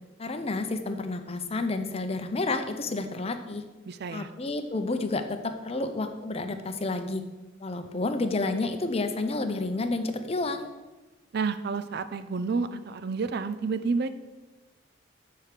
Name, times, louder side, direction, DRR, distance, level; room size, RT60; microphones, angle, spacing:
voice 1, 0.2-3.6 4.1-7.2 7.6-10.7, left 2 dB, 30° left, 8 dB, 0.6 m, -30 dB
voice 2, 3.9-4.3 11.3-14.1, right 4 dB, 55° right, 11 dB, 0.4 m, -30 dB
7.4 x 4.7 x 6.6 m, 1.2 s
head